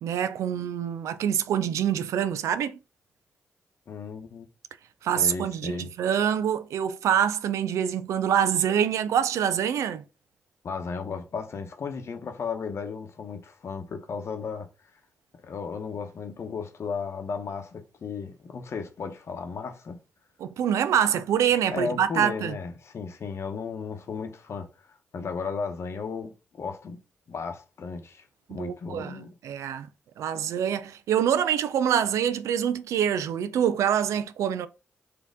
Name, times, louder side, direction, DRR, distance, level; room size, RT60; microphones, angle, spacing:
voice 1, 0.0-2.8 5.0-10.0 20.4-22.6 28.5-29.9 30.2-34.7, right 9 dB, 80° right, 0.3 m, -25 dB
voice 2, 3.9-4.5 5.2-5.9 10.6-14.7 15.4-20.0 21.7-27.0 27.3-29.3, left 5 dB, 60° left, 0.8 m, -35 dB
4.1 x 2.8 x 3.6 m
supercardioid pair, 45°, 5 cm